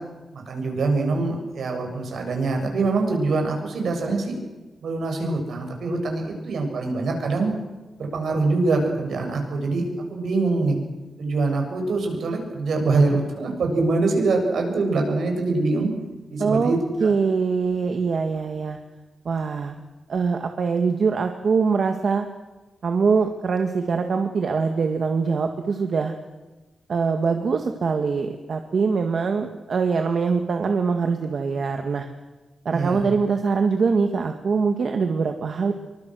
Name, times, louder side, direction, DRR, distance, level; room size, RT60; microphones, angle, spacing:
voice 1, 0.3-4.4 4.8-7.5 8.0-9.8 10.1-10.8 11.2-15.9 16.3-17.1 32.7-33.1, right 3 dB, 70° right, 3 dB, 7.3 m, -24 dB
voice 2, 16.4-16.7 17.0-18.8 19.3-19.8 20.1-22.3 22.8-26.2 26.9-32.1 32.7-35.7, right 5 dB, 50° right, 5 dB, 1.8 m, -23 dB
28.0 x 24.0 x 6.4 m, 1.2 s
wide cardioid pair, 160°, 0 cm